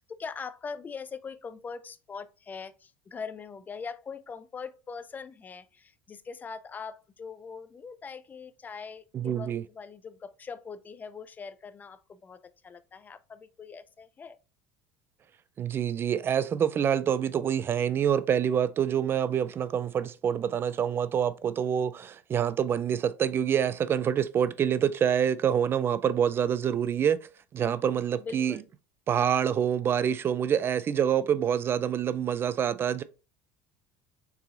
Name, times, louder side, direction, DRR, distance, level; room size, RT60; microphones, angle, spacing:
voice 1, 0.0-14.4 28.1-28.7, left 5 dB, 25° left, 0.4 m, -42 dB
voice 2, 9.1-9.6 15.6-28.6 29.1-33.0, right 8 dB, 35° right, 0.3 m, -26 dB
4.7 x 3.9 x 2.5 m
supercardioid pair, 105°, 7 cm